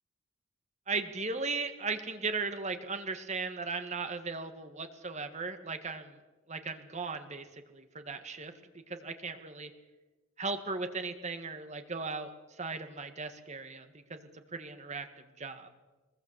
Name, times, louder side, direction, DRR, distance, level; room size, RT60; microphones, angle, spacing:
voice 1, 0.9-6.2 6.5-7.5 7.7-8.5 8.9-9.7 10.4-12.3 12.6-15.1 15.4-15.7, right 4 dB, 35° right, 7 dB, 1.9 m, -37 dB
23.5 x 21.0 x 8.1 m, 1.2 s
head